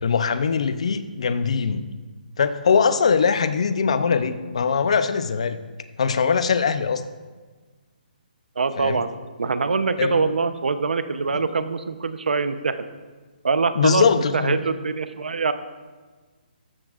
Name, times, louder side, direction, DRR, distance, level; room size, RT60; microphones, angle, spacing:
voice 1, 0.0-1.9 2.4-5.6 6.0-7.0 8.8-9.0 10.0-10.2 13.7-14.5, left 6 dB, 40° left, 12 dB, 0.6 m, -21 dB
voice 2, 8.6-9.1 9.4-12.9 13.4-15.5, right 4 dB, 80° right, 10 dB, 0.8 m, -24 dB
13.5 x 12.5 x 2.5 m, 1.4 s
hypercardioid pair, 180°, 5 cm